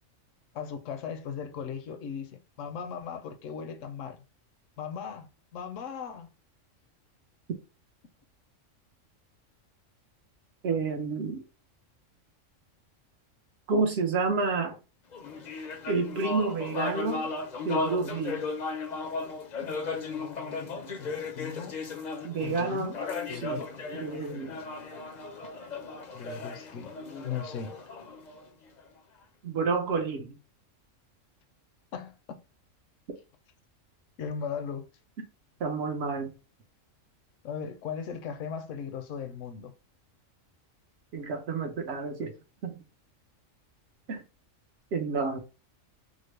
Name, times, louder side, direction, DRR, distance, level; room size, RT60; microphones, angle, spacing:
voice 1, 0.5-2.3 2.6-4.2 4.8-6.3 21.0-21.1 21.4-21.8 22.4-23.0 23.3-23.6 26.1-26.9 27.2-27.8 31.9-32.4 34.2-34.8 37.4-39.7, left 7 dB, 75° left, 1.0 m, -37 dB
voice 2, 10.6-11.4 13.7-14.8 15.9-17.3 17.6-18.4 22.2-22.9 23.3-23.7 24.0-24.6 29.4-30.4 35.6-36.3 41.1-42.3 42.6-42.7 44.1-44.2 44.9-45.4, right 4 dB, 60° right, 0.8 m, -29 dB
sound 1, 15.1-28.8, left 3 dB, 50° left, 0.5 m, -36 dB
3.7 x 2.0 x 3.1 m
omnidirectional pair, 1.3 m